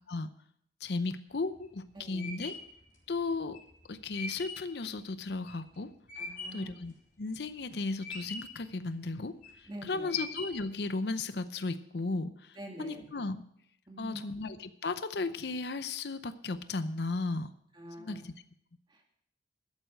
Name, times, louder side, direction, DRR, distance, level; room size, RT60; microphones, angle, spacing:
voice 1, 0.8-2.6 3.1-3.6 3.9-5.9 6.5-6.9 7.2-9.4 9.8-13.4 14.0-17.5 18.0-18.3, left 3 dB, 65° left, 12 dB, 0.7 m, -35 dB
sound 1, 1.3-6.7 7.2-7.7 8.0-8.7 9.2-9.7 10.1-10.8, left 2 dB, 50° left, 4.5 m, -42 dB
voice 2, 1.9-2.3 6.2-6.7 9.7-10.2 12.6-13.0 13.9-14.2 17.7-18.2 18.9-19.1, right 1 dB, 25° right, 1 dB, 2.4 m, -45 dB
12.5 x 8.0 x 6.4 m, 0.70 s
head